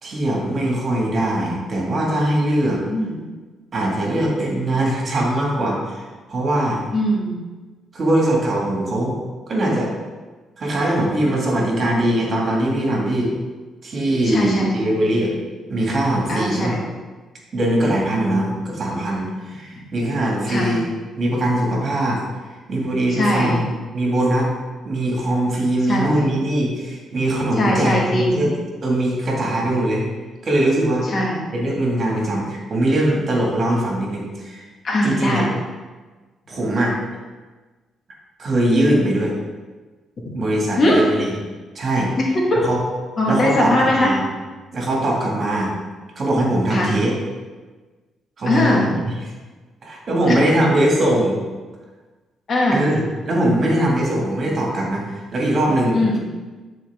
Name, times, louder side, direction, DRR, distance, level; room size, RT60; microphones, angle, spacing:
voice 1, 0.0-2.8 3.7-6.8 7.9-9.2 9.5-9.9 10.6-13.3 13.8-15.3 15.7-16.7 17.5-20.9 21.2-22.2 22.7-24.5 24.8-28.5 28.8-30.0 30.4-31.0 31.5-34.6 35.0-35.5 36.5-37.0 38.4-39.3 40.3-41.3 41.7-42.1 42.6-42.8 43.3-44.2 44.7-45.7 46.2-47.1 48.4-49.0 49.8-51.4 52.7-53.0 53.3-56.2, right 1 dB, 45° right, -2 dB, 2.1 m, -21 dB
voice 2, 2.8-3.2 6.9-7.4 14.2-14.9 16.3-16.8 20.5-20.7 23.1-23.6 25.8-26.3 27.6-28.4 31.1-31.4 34.8-35.5 40.3-40.4 40.8-41.0 42.5-42.6 43.2-44.1 46.7-46.9 48.4-48.9 50.3-50.4 52.5-52.8 55.9-56.2, left 1 dB, 45° left, -3 dB, 1.8 m, -20 dB
9.8 x 4.3 x 3.6 m, 1.3 s
cardioid pair, 90°, 0 cm